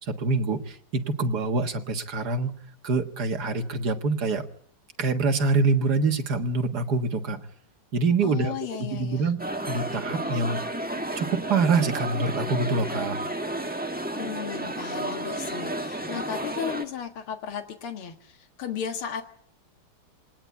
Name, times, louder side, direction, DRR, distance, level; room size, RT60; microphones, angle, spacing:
voice 1, 0.0-2.5 2.8-4.4 5.0-7.4 7.9-10.6 11.2-13.2, right 3 dB, 50° right, 5 dB, 2.0 m, -25 dB
voice 2, 8.2-9.3 14.1-19.2, left 8 dB, 75° left, 6 dB, 2.5 m, -35 dB
sound 1, 9.4-16.8, right 1 dB, 5° right, 1.0 m, -32 dB
23.0 x 19.0 x 8.3 m, 0.62 s
omnidirectional pair, 2.4 m